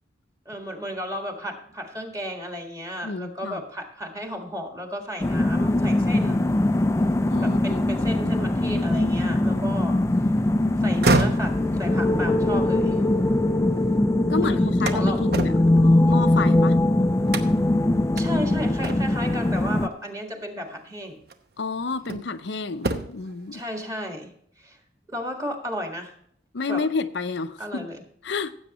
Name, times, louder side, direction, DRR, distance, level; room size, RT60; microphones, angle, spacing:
voice 1, 0.4-6.5 7.4-10.0 10.8-13.0 14.4-14.6 14.9-15.2 18.1-21.2 23.5-24.3 24.6-24.8 25.1-26.1 26.7-26.8 27.6-28.0, equal, 20° right, 1.7 m, -33 dB
voice 2, 3.0-3.6 7.2-7.8 14.3-15.6 16.0-16.8 21.6-23.6 26.5-27.9 28.2-28.5, left 4 dB, 70° left, 0.6 m, -30 dB
sound 1, 5.2-19.9, left 1 dB, 15° left, 0.3 m, -21 dB
sound 2, 10.8-13.9 14.3-16.7 17.3-17.8 18.2-18.3 18.8-19.3 20.6-20.7 21.3-22.4 22.7-23.3, right 2 dB, 55° right, 0.9 m, -29 dB
15.5 x 8.0 x 3.0 m
head